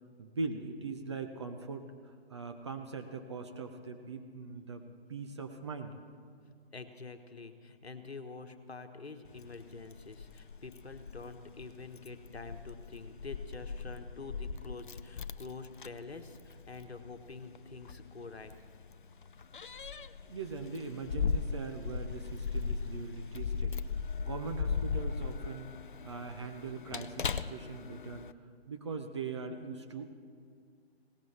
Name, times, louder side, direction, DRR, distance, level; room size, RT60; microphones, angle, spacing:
voice 1, 0.2-4.8 5.1-6.0 20.3-23.8 24.2-28.3 28.7-30.1, right 4 dB, 25° right, 5 dB, 0.7 m, -41 dB
voice 2, 6.7-18.5, left 4 dB, 75° left, 7 dB, 1.4 m, -47 dB
Keys jangling, 9.3-28.3, left 5 dB, 50° left, 0.5 m, -38 dB
21.5 x 18.0 x 3.4 m, 2.1 s
figure-of-eight pair, 150°, 32 cm